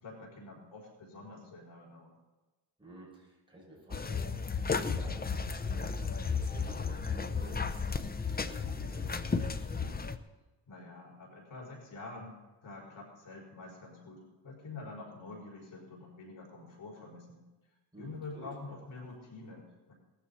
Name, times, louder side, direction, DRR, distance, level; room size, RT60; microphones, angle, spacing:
voice 1, 0.0-2.2 10.7-12.4 12.6-17.4 18.0-19.9, left 3 dB, 85° left, -2 dB, 5.3 m, -47 dB
voice 2, 2.8-7.9 8.2-10.0 17.9-18.8, right 1 dB, 10° right, -6 dB, 6.0 m, -52 dB
sound 1, 3.9-10.2, left 5 dB, 20° left, 0.6 m, -34 dB
18.5 x 14.0 x 4.2 m, 1.1 s
wide cardioid pair, 160°, 46 cm